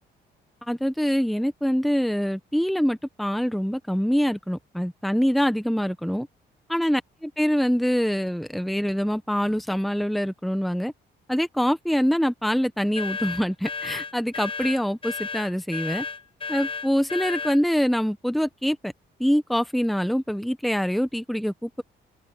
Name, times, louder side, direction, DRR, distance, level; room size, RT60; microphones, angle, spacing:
voice 1, 0.7-6.3 6.7-10.9 11.3-16.0 16.5-18.9 19.2-21.8, equal, ahead, 1.3 m, -24 dB
sound 1, 12.9-17.6, left 5 dB, 25° left, 0.9 m, -33 dB
open air
cardioid pair, 90°, 20 cm